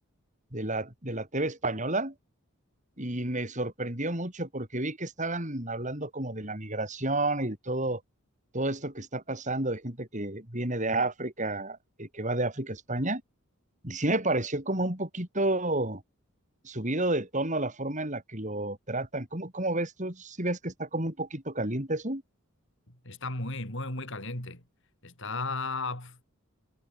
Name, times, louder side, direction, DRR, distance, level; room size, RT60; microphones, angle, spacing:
voice 1, 0.5-2.1 3.0-8.0 8.5-13.2 13.8-16.0 16.6-22.2, right 2 dB, 35° right, 5.6 m, -31 dB
voice 2, 22.9-24.6 25.0-26.2, left 3 dB, 60° left, 6.5 m, -35 dB
head